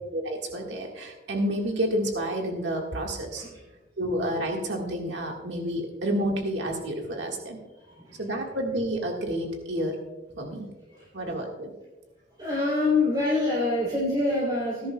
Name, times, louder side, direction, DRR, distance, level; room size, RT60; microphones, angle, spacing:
voice 1, 0.1-3.4 4.0-7.6 8.2-10.0 10.4-10.7 11.1-11.7, right 1 dB, 90° right, 1 dB, 1.7 m, -29 dB
voice 2, 7.7-8.2 10.9-11.4 12.4-14.9, left 2 dB, 25° right, -7 dB, 3.3 m, -26 dB
18.5 x 11.0 x 2.3 m, 1.1 s
head